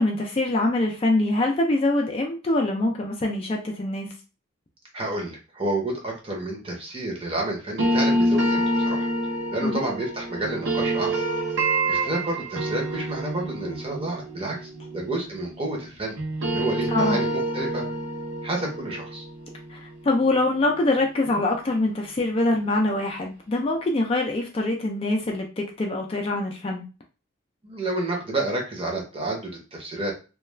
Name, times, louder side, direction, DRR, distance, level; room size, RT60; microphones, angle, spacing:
voice 1, 0.0-4.1 9.6-9.9 16.9-17.3 19.7-26.8, left 2 dB, 30° left, 1 dB, 0.3 m, -24 dB
voice 2, 4.9-9.1 9.5-11.2 11.9-16.2 16.4-17.8 18.4-19.2 27.6-30.1, right 2 dB, 30° right, -1 dB, 0.7 m, -30 dB
sound 1, 7.8-15.9 16.2-21.1, right 1 dB, 65° right, 0.6 m, -27 dB
2.3 x 2.2 x 3.1 m, 0.32 s
head